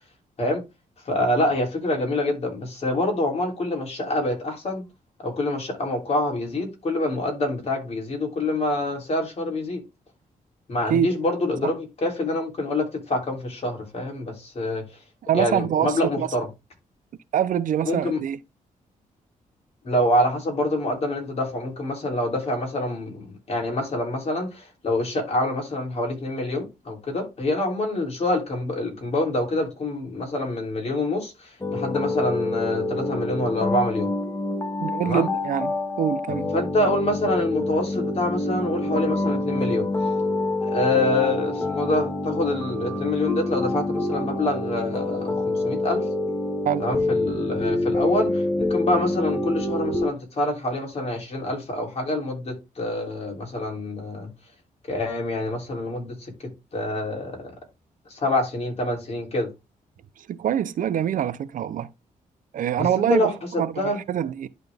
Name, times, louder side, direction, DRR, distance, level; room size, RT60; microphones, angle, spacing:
voice 1, 1.1-4.8 5.2-9.8 10.7-14.8 15.3-16.5 17.9-18.2 19.8-34.1 35.0-35.3 36.5-39.9 40.6-46.0 46.8-54.3 54.9-56.1 56.7-57.5 58.1-59.5 62.8-64.0, left 1 dB, 45° left, 3.3 m, -26 dB
voice 2, 15.2-16.3 17.3-18.4 34.8-36.5 46.6-46.8 60.2-61.9 62.5-64.5, right 9 dB, 65° right, 0.5 m, -25 dB
sound 1, 31.6-50.1, left 2 dB, 20° left, 1.0 m, -27 dB
11.0 x 3.9 x 3.5 m
cardioid pair, 120°, 14 cm